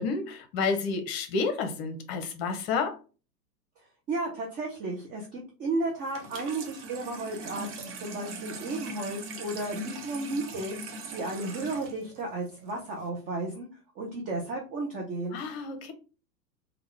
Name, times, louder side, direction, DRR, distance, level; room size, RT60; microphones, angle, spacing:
voice 1, 0.0-3.0 15.3-15.9, left 4 dB, 40° left, 0.8 m, -30 dB
voice 2, 4.1-13.7 14.0-15.4, right 2 dB, 20° right, 0.5 m, -33 dB
Water tap faucet / Sink (filling or washing), 6.0-13.1, right 2 dB, 45° right, 0.9 m, -41 dB
3.6 x 2.3 x 3.1 m
figure-of-eight pair, 95°, 48 cm